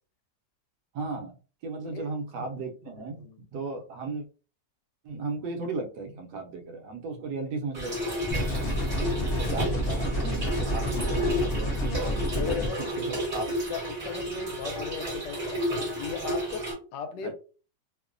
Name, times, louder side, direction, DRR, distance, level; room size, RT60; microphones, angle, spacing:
voice 1, 0.9-1.4 1.6-3.2 3.5-4.2 5.0-8.2 9.0-9.2 9.5-13.4 17.2-17.3, right 3 dB, 75° right, 1.1 m, -36 dB
voice 2, 2.8-3.4 12.3-12.8 13.7-16.7 16.9-17.3, left 6 dB, 75° left, 1.2 m, -37 dB
Trickle dribble / Fill (with liquid), 7.7-16.7, equal, 35° right, 0.7 m, -32 dB
sound 1, 8.3-12.7, left 1 dB, 50° left, 0.7 m, -29 dB
3.0 x 2.1 x 2.4 m
omnidirectional pair, 1.9 m